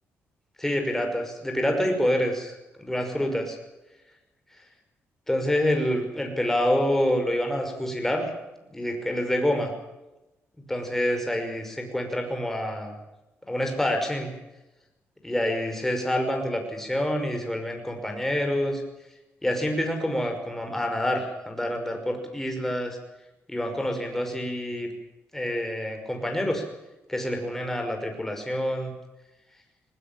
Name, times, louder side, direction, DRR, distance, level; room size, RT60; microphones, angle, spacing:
voice 1, 0.6-3.6 5.3-8.3 8.7-9.7 10.7-12.9 13.5-14.3 15.2-18.8 19.4-23.0 23.5-24.9 25.3-26.6 27.1-28.9, left 1 dB, 5° left, 3 dB, 5.7 m, -27 dB
21.0 x 20.0 x 7.5 m, 0.99 s
cardioid pair, 120°, 5 cm